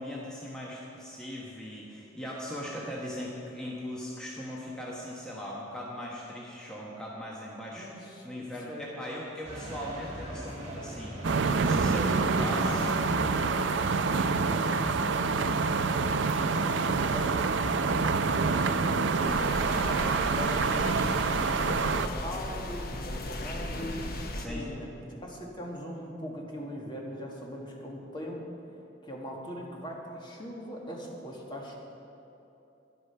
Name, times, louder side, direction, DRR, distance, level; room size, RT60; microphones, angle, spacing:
voice 1, 0.0-11.2 11.5-12.9 19.5-19.9 24.3-24.7, equal, 5° left, -5 dB, 1.2 m, -39 dB
voice 2, 7.7-8.9 9.5-9.6 12.2-13.2 13.6-17.4 17.8-19.2 19.8-24.0 24.4-28.7 29.0-31.7, equal, 25° left, -1 dB, 1.7 m, -41 dB
sound 1, 9.4-15.7, right 1 dB, 35° right, 2.8 m, -41 dB
sound 2, 11.2-22.1, right 4 dB, 80° right, 0.5 m, -27 dB
sound 3, 19.3-24.5, left 1 dB, 55° left, 1.0 m, -36 dB
11.5 x 11.0 x 5.6 m, 2.9 s
head